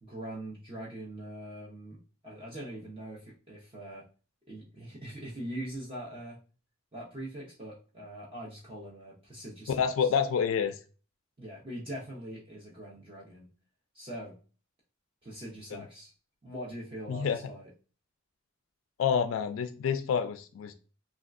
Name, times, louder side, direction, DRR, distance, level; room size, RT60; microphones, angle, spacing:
voice 1, 0.0-4.1 4.5-6.4 6.9-10.1 11.4-13.5 13.9-14.4 15.2-16.1 16.4-17.7, right 1 dB, 25° right, -5 dB, 0.6 m, -42 dB
voice 2, 9.7-10.7 15.7-15.8 17.1-17.4 19.0-20.7, left 7 dB, 75° left, 8 dB, 0.3 m, -28 dB
3.5 x 2.3 x 2.4 m, 0.36 s
head